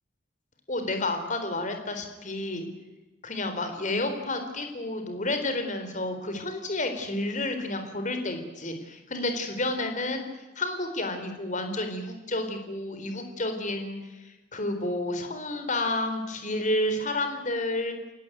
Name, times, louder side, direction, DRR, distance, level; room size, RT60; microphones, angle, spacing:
voice 1, 0.7-2.6 3.2-18.0, left 2 dB, 40° left, 7 dB, 4.1 m, -30 dB
29.0 x 17.0 x 9.2 m, 1.1 s
head